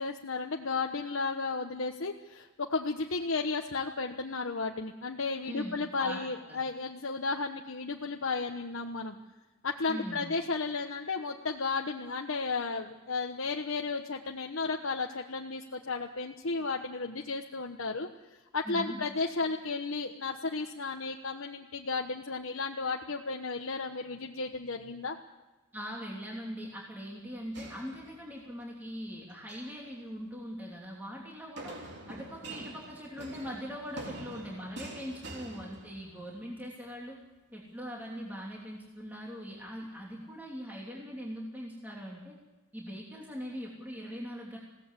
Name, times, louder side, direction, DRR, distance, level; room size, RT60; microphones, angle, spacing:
voice 1, 0.0-9.2 9.6-25.2, left 4 dB, 70° left, 2 dB, 1.2 m, -34 dB
voice 2, 5.4-6.6 9.9-10.3 18.6-19.0 25.7-31.7 32.1-37.2 37.5-42.4 42.7-44.6, equal, 10° right, -3 dB, 3.0 m, -41 dB
sound 1, 27.5-28.6 29.3-29.8 31.6-36.4, right 1 dB, 55° right, 3.7 m, -45 dB
21.0 x 17.0 x 8.2 m, 1.1 s
head